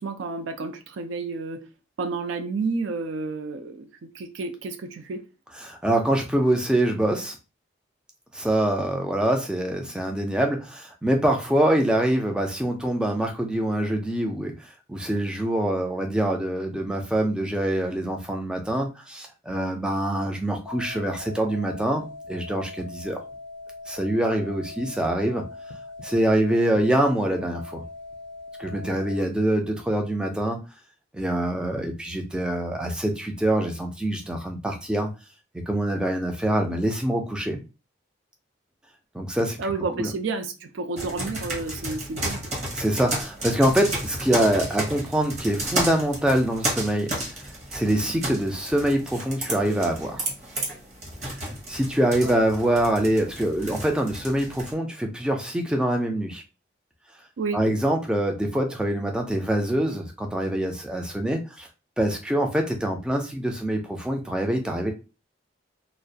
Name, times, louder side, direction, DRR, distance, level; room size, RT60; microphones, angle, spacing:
voice 1, 0.0-1.6 2.0-3.9 4.1-5.2 39.6-42.4 57.4-57.6, right 4 dB, 85° right, 6 dB, 0.4 m, -30 dB
voice 2, 5.6-7.4 8.3-23.2 23.9-25.5 26.0-27.8 28.6-30.6 31.1-35.1 35.7-37.6 39.1-39.7 40.0-40.1 42.7-47.1 47.7-50.3 51.2-56.4 57.5-61.7 62.0-64.9, right 1 dB, 5° right, 2 dB, 0.3 m, -25 dB
sound 1, 20.7-29.2, left 3 dB, 80° left, 0.4 m, -41 dB
sound 2, 41.0-54.7, right 1 dB, 35° right, 0.8 m, -32 dB
2.3 x 2.1 x 2.6 m, 0.30 s
head